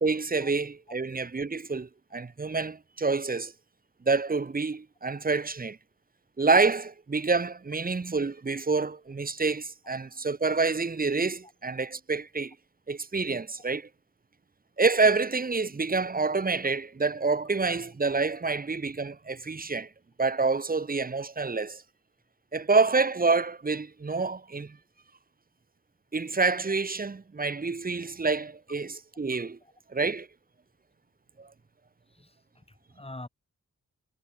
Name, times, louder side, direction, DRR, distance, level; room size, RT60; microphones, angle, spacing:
voice 1, 0.0-3.5 4.1-5.8 6.4-12.5 12.9-13.9 14.8-19.9 20.2-21.8 22.5-24.8 26.1-29.6 29.9-30.3 31.4-31.5, right 4 dB, 30° right, 0.8 m, -27 dB
voice 2, 32.1-33.3, left 2 dB, 20° left, 3.0 m, -46 dB
wide cardioid pair, 80°, 30 cm